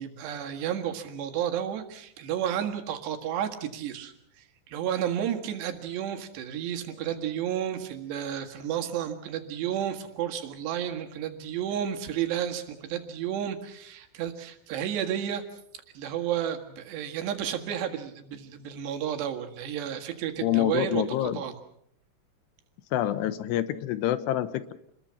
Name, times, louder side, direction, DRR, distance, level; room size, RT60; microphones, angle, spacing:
voice 1, 0.0-15.4 15.9-21.6, right 10 dB, 85° right, 5 dB, 4.0 m, -32 dB
voice 2, 20.4-21.4 22.9-24.7, left 12 dB, 85° left, 13 dB, 3.2 m, -27 dB
28.5 x 21.0 x 5.8 m, 0.71 s
omnidirectional pair, 4.8 m